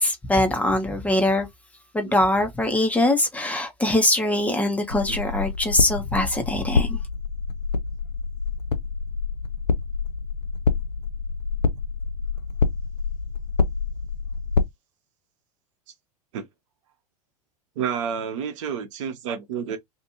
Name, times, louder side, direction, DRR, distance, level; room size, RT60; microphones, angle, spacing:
voice 1, 0.0-1.5 1.9-7.0, left 1 dB, 5° left, 0.7 m, -22 dB
sound 1, 4.9-14.6, left 4 dB, 80° left, 0.6 m, -27 dB
voice 2, 17.8-19.8, right 7 dB, 50° right, 0.8 m, -30 dB
2.8 x 2.5 x 2.7 m
figure-of-eight pair, 90°, 20 cm